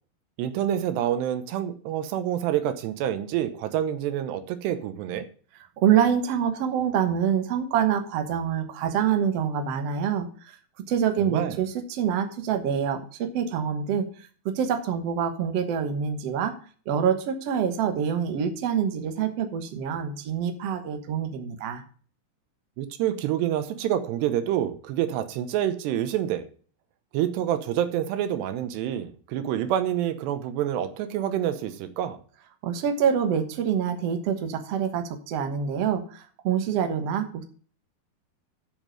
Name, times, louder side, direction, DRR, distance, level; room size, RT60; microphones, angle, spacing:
voice 1, 0.4-5.3 11.2-11.6 22.8-26.5 27.1-32.2, right 11 dB, 80° right, 11 dB, 3.1 m, -27 dB
voice 2, 5.8-10.3 10.9-14.1 14.4-16.5 16.9-21.8 32.6-37.4, right 8 dB, 65° right, 7 dB, 1.6 m, -26 dB
7.8 x 7.5 x 6.4 m, 0.43 s
omnidirectional pair, 4.8 m